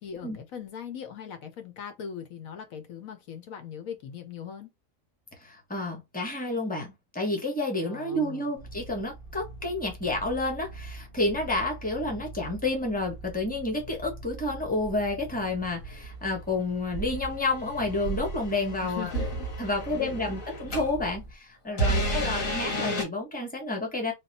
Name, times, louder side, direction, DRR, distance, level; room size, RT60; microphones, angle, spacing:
voice 1, 0.0-4.7 7.8-8.5 18.8-19.5 19.9-20.4 21.9-22.3, left 8 dB, 90° left, 1.3 m, -40 dB
voice 2, 5.4-19.1 19.6-24.1, left 2 dB, 5° left, 1.1 m, -30 dB
sound 1, 8.6-21.3, right 2 dB, 45° left, 0.9 m, -44 dB
sound 2, 14.8-15.2 15.8-16.1 16.9-21.0 21.7-23.0, right 1 dB, 75° left, 1.9 m, -32 dB
3.5 x 2.3 x 4.1 m
omnidirectional pair, 1.4 m